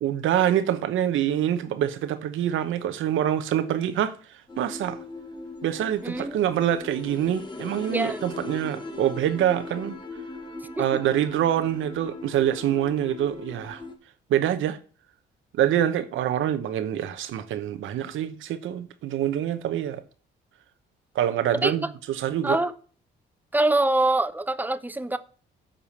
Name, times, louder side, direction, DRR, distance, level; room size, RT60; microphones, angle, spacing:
voice 1, 0.0-5.0 5.6-10.0 10.8-13.8 14.3-14.8 15.5-20.0 21.1-22.6, right 11 dB, 80° right, 1.0 m, -25 dB
sound 1, 4.5-13.9, left 2 dB, 20° left, 1.6 m, -39 dB
voice 2, 6.0-6.4 7.9-8.3 10.8-11.0 21.6-21.9 22.4-22.7 23.5-25.2, right 2 dB, 10° right, 0.8 m, -24 dB
7.7 x 5.0 x 7.0 m
cardioid pair, 90°, 20 cm